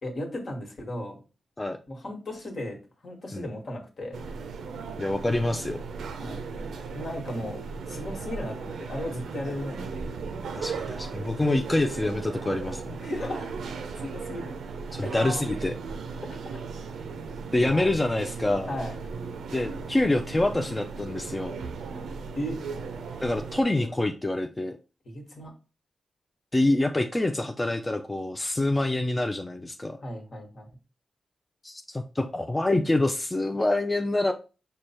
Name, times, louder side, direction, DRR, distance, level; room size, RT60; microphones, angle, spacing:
voice 1, 0.0-1.2 1.9-2.8 3.0-4.2 6.2-6.4 6.9-7.6 7.9-10.2 13.0-13.5 13.9-14.5 15.0-15.2 16.3-16.4 17.6-17.9 18.7-19.0 22.4-22.6 23.8-23.9 25.0-25.5 30.0-30.7, left 1 dB, 65° left, 1 dB, 1.4 m, -35 dB
sound 1, 4.1-23.6, right 5 dB, 85° right, 0.5 m, -36 dB
voice 2, 5.0-5.8 10.5-13.0 14.9-15.8 17.5-18.7 19.5-21.5 23.2-24.8 26.5-30.0 31.6-34.3, left 2 dB, 20° left, 5 dB, 0.4 m, -26 dB
4.9 x 2.2 x 4.3 m, 0.33 s
supercardioid pair, 50°, 0 cm